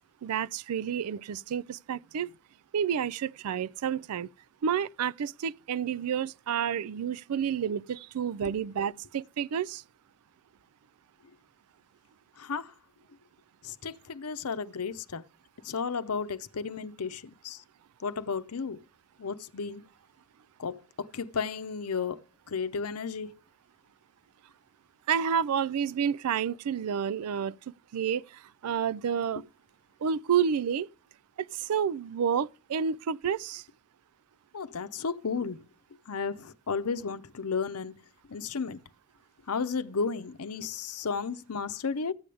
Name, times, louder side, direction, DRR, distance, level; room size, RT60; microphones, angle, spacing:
voice 1, 0.2-2.3 2.7-4.3 4.6-9.8 25.1-29.4 30.0-30.9 31.5-33.6, right 7 dB, 85° right, 0.4 m, -30 dB
voice 2, 12.4-12.7 13.6-15.2 15.6-17.6 18.0-18.8 19.2-19.8 20.6-22.2 22.5-23.3 34.5-35.6 36.1-37.9 38.3-38.8 39.5-42.1, left 5 dB, 90° left, 0.7 m, -33 dB
14.0 x 8.5 x 3.4 m
head